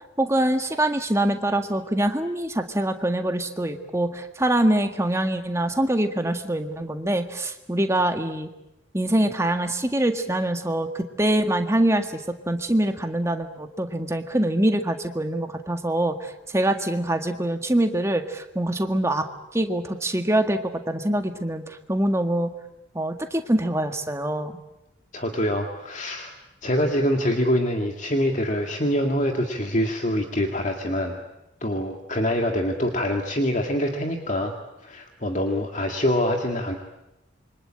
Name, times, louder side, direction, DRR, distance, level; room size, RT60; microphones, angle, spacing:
voice 1, 0.2-8.5 8.9-12.2 12.5-19.3 19.5-20.6 20.9-22.5 22.9-24.5, right 1 dB, 15° right, 6 dB, 1.8 m, -24 dB
voice 2, 25.1-26.3 26.6-31.2 31.6-34.5 34.8-36.8, equal, 40° left, 3 dB, 2.1 m, -25 dB
27.5 x 24.5 x 8.9 m, 0.91 s
head